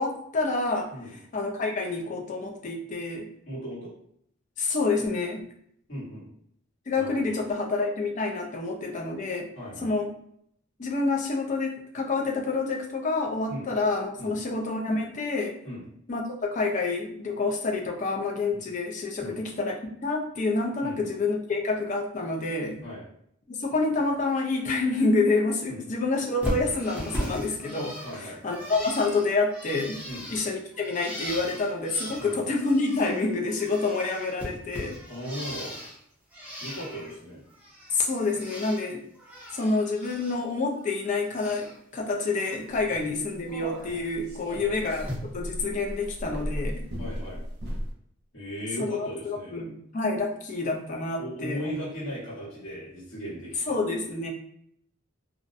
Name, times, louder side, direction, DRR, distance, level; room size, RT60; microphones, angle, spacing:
voice 1, 0.0-3.3 4.6-5.4 6.9-9.5 9.8-10.1 10.8-15.5 16.1-19.8 20.0-22.8 23.5-30.0 30.3-35.0 37.9-39.0 39.5-45.1 45.3-46.8 48.9-51.7 53.7-54.3, left 3 dB, 35° left, 1 dB, 0.4 m, -28 dB
voice 2, 3.5-3.9 5.9-6.3 6.9-7.4 9.5-9.9 13.5-13.7 14.2-14.3 15.6-15.8 18.5-18.6 19.2-19.4 20.8-21.0 22.8-23.0 25.7-25.8 28.0-28.4 30.1-30.2 32.2-32.4 35.1-35.8 36.6-37.4 42.9-43.0 44.5-44.7 47.0-47.4 48.3-49.6 51.2-53.8, equal, 70° left, -8 dB, 1.2 m, -37 dB
Bird, 26.4-33.2 33.5-36.0 36.3-37.2 37.5-38.8 39.1-40.4 40.7-41.8 42.1-42.6 43.9-44.0 45.0-45.1, equal, 10° right, 0.6 m, -38 dB
sound 1, 42.7-47.9, equal, 55° right, 0.6 m, -36 dB
2.4 x 2.0 x 2.5 m, 0.71 s
head